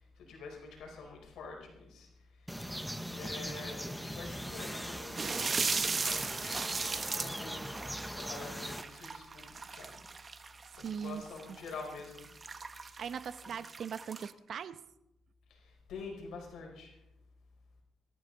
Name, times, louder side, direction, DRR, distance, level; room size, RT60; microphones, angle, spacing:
voice 1, 0.0-2.1 2.4-2.8 3.1-5.4 5.8-6.7 7.2-7.6 8.1-10.0 10.7-12.3 13.4-13.5 15.5-17.0, left 4 dB, 75° left, 1 dB, 4.8 m, -47 dB
sound 1, 2.5-8.8, equal, ahead, 1.1 m, -40 dB
sound 2, 5.2-14.3, right 4 dB, 35° right, 1.1 m, -37 dB
voice 2, 10.8-11.2 11.5-11.6 13.0-14.8, right 7 dB, 60° right, 12 dB, 0.9 m, -40 dB
23.5 x 13.0 x 4.0 m, 0.86 s
cardioid pair, 90°, 0 cm